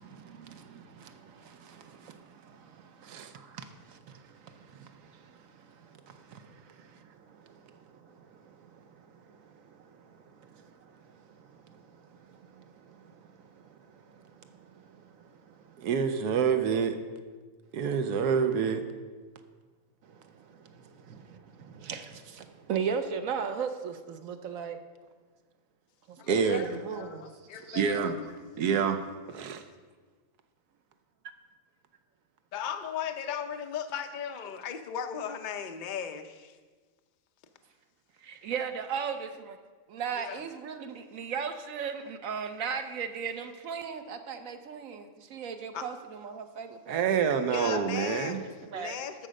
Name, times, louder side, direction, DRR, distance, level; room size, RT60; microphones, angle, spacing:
voice 1, 0.0-15.9 20.0-24.8 26.1-27.3 38.1-39.6 39.9-47.9 48.4-49.0, right 6 dB, 65° right, 1.0 m, -39 dB
voice 2, 3.0-3.3 15.8-17.0 17.7-18.8 26.3-26.6 27.7-28.2 28.6-29.0 29.3-29.6 46.9-48.4, right 6 dB, 85° right, 1.3 m, -27 dB
voice 3, 26.2-26.7 26.9-28.1 32.5-36.6 40.2-40.4 45.7-45.9 47.4-48.4 48.7-49.3, left 7 dB, 55° left, 0.5 m, -36 dB
13.0 x 5.0 x 6.4 m
omnidirectional pair, 1.7 m